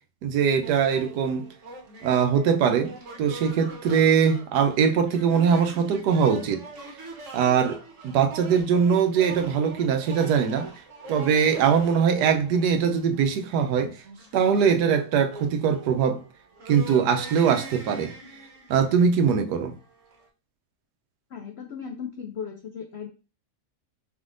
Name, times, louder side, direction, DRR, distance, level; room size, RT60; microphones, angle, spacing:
voice 1, 0.2-1.5 2.0-2.9 3.2-6.6 7.3-10.7 11.1-14.0 14.3-16.2 16.7-18.1 18.7-19.7, right 7 dB, 90° right, 1.2 m, -22 dB
sound 1, 0.6-20.3, right 3 dB, 55° right, 1.2 m, -43 dB
voice 2, 21.3-23.1, left 7 dB, 90° left, 0.5 m, -36 dB
4.5 x 3.5 x 2.5 m
omnidirectional pair, 1.7 m